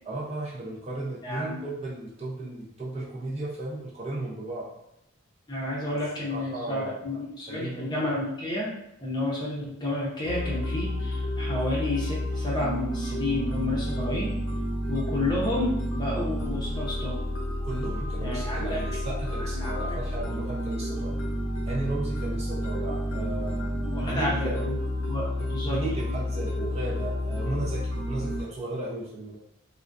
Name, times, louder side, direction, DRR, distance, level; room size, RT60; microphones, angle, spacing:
voice 1, 0.1-4.7 5.9-7.0 7.5-7.9 17.6-21.2 21.7-24.6 25.4-29.4, right 2 dB, 30° right, -5 dB, 0.5 m, -35 dB
voice 2, 5.5-8.7 9.0-14.3 14.9-17.2 18.2-18.8 19.4-20.0 23.7-26.2, left 1 dB, 20° left, -6 dB, 0.6 m, -31 dB
sound 1, 10.2-28.4, left 1 dB, 75° left, 0.7 m, -30 dB
2.4 x 2.1 x 2.4 m, 0.81 s
head